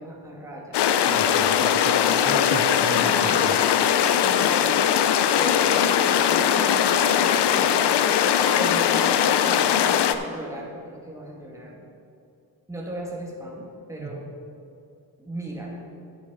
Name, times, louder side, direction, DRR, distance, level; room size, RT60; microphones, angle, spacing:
voice 1, 0.0-1.0 3.0-3.6 4.2-7.8 8.5-11.8 12.7-14.3 15.2-15.9, right 1 dB, 10° right, -3 dB, 2.1 m, -37 dB
sound 1, 0.7-10.1, left 9 dB, 85° left, 0.6 m, -20 dB
voice 2, 1.1-3.6 14.0-14.3, right 5 dB, 45° right, 7 dB, 0.7 m, -35 dB
10.5 x 8.3 x 4.0 m, 2.6 s
cardioid pair, 75°, 40 cm